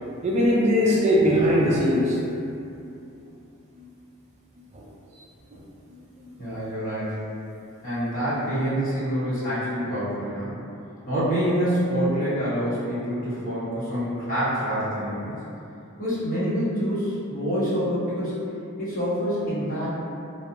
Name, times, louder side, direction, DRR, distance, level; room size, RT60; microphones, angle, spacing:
voice 1, 0.2-2.2 3.8-3.9 4.7-4.8 5.5-5.6, equal, 30° right, -5 dB, 0.3 m, -20 dB
voice 2, 6.4-7.2 7.8-10.5 11.1-15.3 16.0-18.4 18.8-20.0, equal, 40° left, -12 dB, 1.0 m, -26 dB
2.7 x 2.2 x 2.5 m, 2.7 s
head